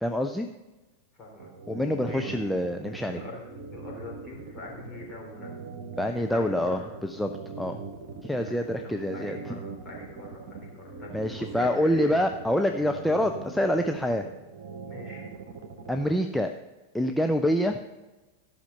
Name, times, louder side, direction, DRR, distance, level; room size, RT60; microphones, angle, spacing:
voice 1, 0.0-0.5 1.7-3.2 6.0-7.3 7.6-7.8 8.2-9.6 11.1-14.2 15.9-16.5 16.9-17.8, left 1 dB, ahead, 4 dB, 0.5 m, -26 dB
voice 2, 1.2-1.5 2.0-2.3 3.1-5.6 6.0-6.9 8.5-10.7 11.0-12.2 14.8-15.2, left 2 dB, 25° left, -2 dB, 3.7 m, -42 dB
sound 1, 1.4-16.1, right 4 dB, 55° right, 1.5 m, -41 dB
14.0 x 5.7 x 5.5 m, 1.2 s
figure-of-eight pair, 90°, 0 cm